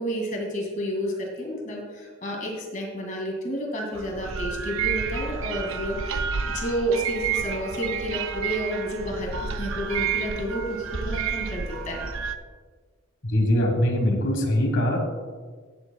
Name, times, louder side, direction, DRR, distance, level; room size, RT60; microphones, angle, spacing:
voice 1, 0.0-6.3 6.5-12.0, equal, 40° left, -1 dB, 2.1 m, -30 dB
sound 1, 3.9-12.4, right 6 dB, 75° right, 0.5 m, -30 dB
voice 2, 13.2-15.0, left 1 dB, 60° left, 1 dB, 1.4 m, -22 dB
15.0 x 7.6 x 2.3 m, 1.5 s
head